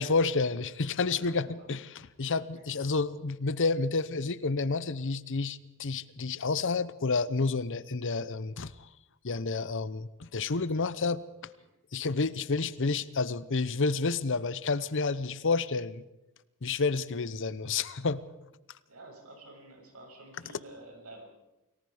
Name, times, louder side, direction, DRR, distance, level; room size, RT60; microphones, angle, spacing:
voice 1, 0.0-1.9 2.2-8.7 9.2-11.2 11.9-16.0 16.6-18.2, left 4 dB, 60° left, 16 dB, 0.9 m, -30 dB
voice 2, 1.0-1.7 2.5-2.6 18.9-21.2, right 2 dB, 80° right, 1 dB, 7.2 m, -50 dB
29.0 x 19.0 x 5.0 m, 0.96 s
head